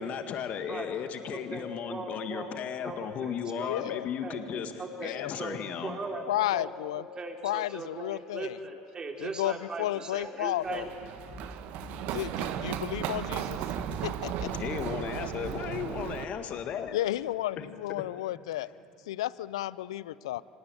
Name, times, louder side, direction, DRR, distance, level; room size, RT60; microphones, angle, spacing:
voice 1, 0.0-4.7 5.0-6.0 14.4-17.0 17.6-17.7, left 8 dB, 50° left, 8 dB, 1.8 m, -35 dB
voice 2, 1.3-2.5 2.8-3.7 4.2-4.4 4.8-5.1 5.4-6.2 6.5-10.9, right 3 dB, 30° right, 2 dB, 3.8 m, -39 dB
voice 3, 3.7-4.1 5.0-5.3 6.3-7.0 7.4-8.6 9.2-10.8 12.0-13.6 14.0-14.5 15.2-15.3 16.9-18.7 19.1-20.4, left 14 dB, 80° left, 19 dB, 0.5 m, -32 dB
Run, 10.6-16.2, right 11 dB, 65° right, 1.2 m, -35 dB
sound 1, 11.0-16.4, left 3 dB, 25° left, 4.4 m, -48 dB
25.0 x 18.5 x 9.2 m, 2.6 s
hypercardioid pair, 75°, 3 cm